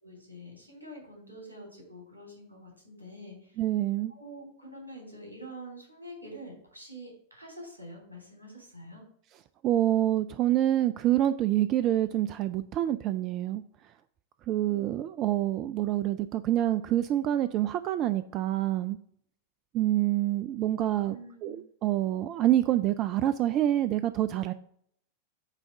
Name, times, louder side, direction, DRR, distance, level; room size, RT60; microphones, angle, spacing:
voice 1, 0.0-3.6 4.1-9.0 21.0-21.6, equal, 85° right, 0 dB, 3.5 m, -46 dB
voice 2, 3.6-4.1 9.6-13.6 14.5-19.0 19.7-24.5, right 13 dB, 35° right, 12 dB, 0.4 m, -27 dB
9.0 x 3.5 x 6.6 m, 0.64 s
figure-of-eight pair, 90°, 0 cm